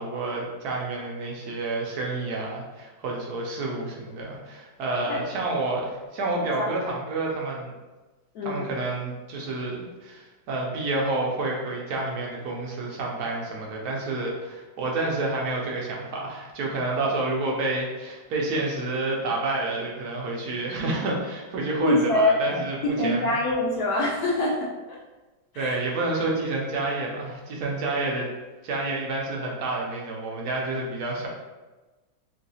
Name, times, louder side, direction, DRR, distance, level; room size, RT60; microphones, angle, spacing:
voice 1, 0.0-7.7 8.4-23.2 25.6-28.3 28.6-31.3, right 2 dB, 70° right, -2 dB, 1.0 m, -29 dB
voice 2, 8.3-8.7 21.8-22.6 23.0-25.0 25.5-25.8, left 1 dB, 70° left, -3 dB, 0.9 m, -24 dB
3.2 x 2.7 x 2.6 m, 1.2 s
omnidirectional pair, 2.1 m